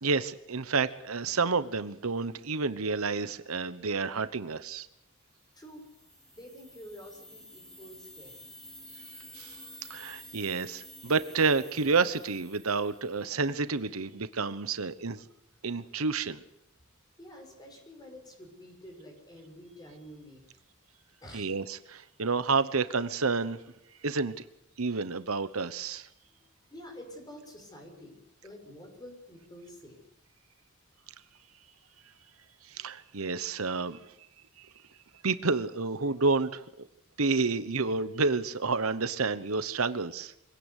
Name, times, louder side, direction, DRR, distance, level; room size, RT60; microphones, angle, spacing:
voice 1, 0.0-4.9 9.3-9.6 9.9-15.2 15.6-16.4 21.3-23.6 24.0-24.3 24.8-26.1 32.7-34.0 34.6-34.7 35.2-36.6 37.2-40.3, right 4 dB, 80° right, 13 dB, 1.1 m, -29 dB
sound 1, 5.5-13.4, left 1 dB, 5° left, 2.8 m, -51 dB
voice 2, 6.3-8.4 17.2-20.4 21.2-21.5 26.2-30.0, equal, 20° left, 2 dB, 6.5 m, -49 dB
25.0 x 17.5 x 8.2 m, 0.82 s
head